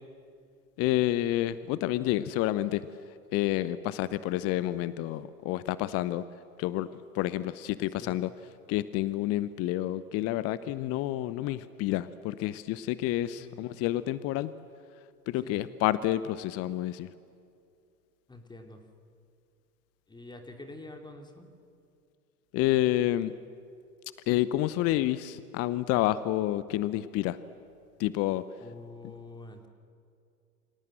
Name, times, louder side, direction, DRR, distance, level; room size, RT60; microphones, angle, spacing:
voice 1, 0.8-2.9 3.3-6.2 6.6-6.9 7.1-8.3 8.7-14.5 15.3-17.1 22.5-23.3 24.3-27.4 28.0-28.4, left 14 dB, 30° left, 16 dB, 0.8 m, -29 dB
voice 2, 18.3-18.8 20.1-21.5 28.6-29.7, left 2 dB, 10° left, 4 dB, 2.8 m, -46 dB
29.0 x 26.0 x 7.7 m, 2.4 s
figure-of-eight pair, 90°, 46 cm